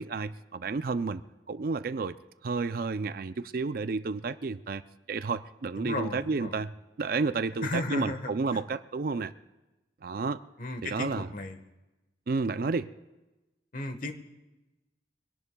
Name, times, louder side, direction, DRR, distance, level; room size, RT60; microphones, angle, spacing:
voice 1, 0.0-2.2 2.4-6.7 7.0-9.3 10.0-10.4 10.8-11.3 12.3-12.9, right 4 dB, 50° right, 13 dB, 0.4 m, -31 dB
voice 2, 5.8-6.6 7.6-8.6 10.6-11.6 13.7-14.1, left 2 dB, 45° left, 7 dB, 1.3 m, -35 dB
24.0 x 18.0 x 2.3 m, 1.1 s
head